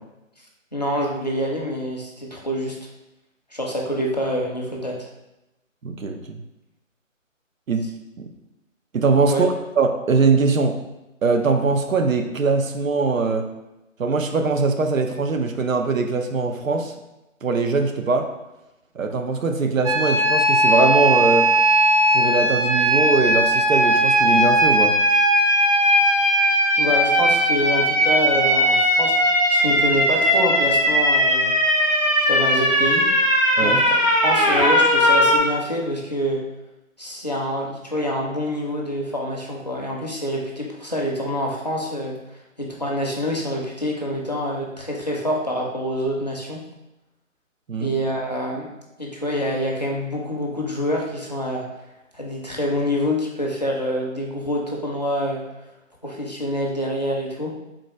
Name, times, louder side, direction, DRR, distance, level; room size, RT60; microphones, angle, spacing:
voice 1, 0.7-2.8 3.5-5.1 9.3-9.5 26.8-31.5 32.2-33.1 33.6-34.0 34.2-36.4 37.0-42.1 42.6-46.6 47.8-48.7 49.0-51.7 52.1-55.4 56.0-57.5, equal, 35° left, -2 dB, 0.4 m, -26 dB
voice 2, 5.8-6.4 7.7-7.8 8.2-8.3 8.9-10.7 11.2-13.5 14.0-16.9 17.4-18.3 19.0-21.5 22.1-25.0 33.6-33.8 47.7-47.9, right 4 dB, 80° right, 5 dB, 0.6 m, -21 dB
sound 1, 19.8-35.4, equal, 30° right, 0.5 m, -18 dB
3.8 x 2.3 x 4.2 m, 0.97 s
figure-of-eight pair, 155°, 40 cm